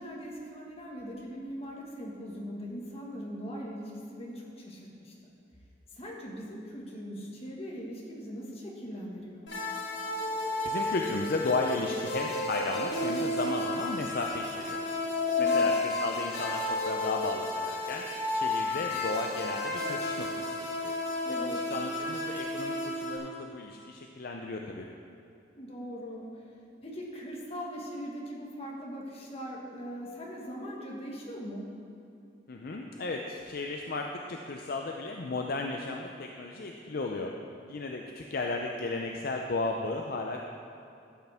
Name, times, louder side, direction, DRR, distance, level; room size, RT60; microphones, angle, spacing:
voice 1, 0.0-5.1 5.9-9.5 15.3-15.7 21.2-21.6 25.5-26.4 26.8-31.7, equal, 35° left, -3 dB, 1.7 m, -40 dB
sound 1, 9.5-23.2, left 2 dB, 85° left, 1.6 m, -32 dB
voice 2, 10.6-14.8 15.4-18.0 18.3-20.5 20.8-20.9 21.3-24.9 32.5-37.3 37.7-40.4, left 3 dB, 55° left, 2 dB, 0.5 m, -34 dB
13.0 x 8.1 x 3.5 m, 2.7 s
head